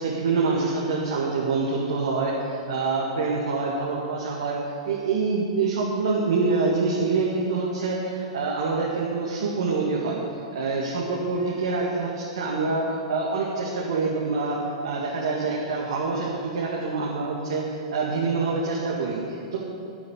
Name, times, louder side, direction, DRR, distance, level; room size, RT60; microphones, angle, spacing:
voice 1, 0.0-4.6 4.9-10.2 10.5-19.6, right 4 dB, 70° right, -4 dB, 2.2 m, -26 dB
11.5 x 8.7 x 8.2 m, 2.5 s
hypercardioid pair, 110°, 3 cm